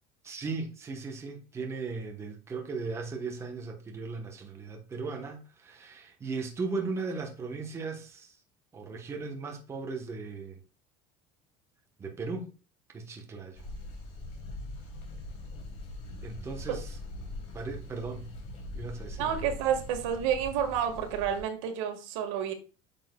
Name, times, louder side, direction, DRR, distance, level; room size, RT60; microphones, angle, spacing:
voice 1, 0.2-8.4 8.7-10.6 12.0-12.5 12.9-13.6 16.2-16.9 17.5-18.3 18.7-19.4, right 4 dB, 15° right, 1.1 m, -37 dB
sound 1, 13.5-21.4, left 2 dB, 50° left, 3.2 m, -42 dB
voice 2, 19.2-22.5, right 9 dB, 90° right, 1.7 m, -30 dB
9.0 x 6.3 x 2.3 m
cardioid pair, 165°, 15 cm